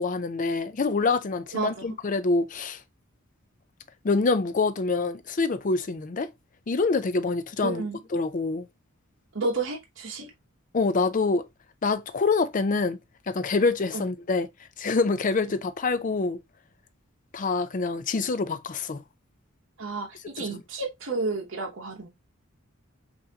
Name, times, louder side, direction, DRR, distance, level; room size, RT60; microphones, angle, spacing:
voice 1, 0.0-2.8 4.0-6.3 6.7-7.8 8.1-8.7 10.7-11.4 11.8-13.0 13.3-14.5 14.8-16.4 17.3-19.0 20.4-20.6, left 3 dB, 40° left, 0.5 m, -26 dB
voice 2, 1.5-2.0 7.6-8.0 9.3-10.3 13.9-14.1 15.5-15.6 19.8-22.1, right 3 dB, 60° right, 1.0 m, -31 dB
5.6 x 2.7 x 2.8 m
head